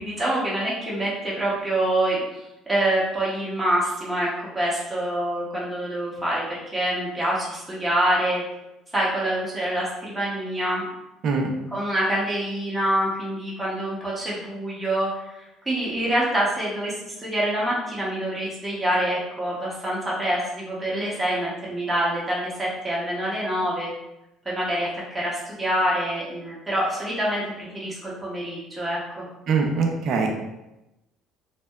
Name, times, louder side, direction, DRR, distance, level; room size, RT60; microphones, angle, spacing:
voice 1, 0.0-2.2 2.7-8.4 8.9-10.9 11.7-23.9 24.5-29.2, right 1 dB, 10° right, -7 dB, 0.6 m, -26 dB
voice 2, 29.5-30.3, right 5 dB, 55° right, 2 dB, 0.4 m, -22 dB
2.7 x 2.2 x 2.2 m, 0.94 s
cardioid pair, 135°, 0 cm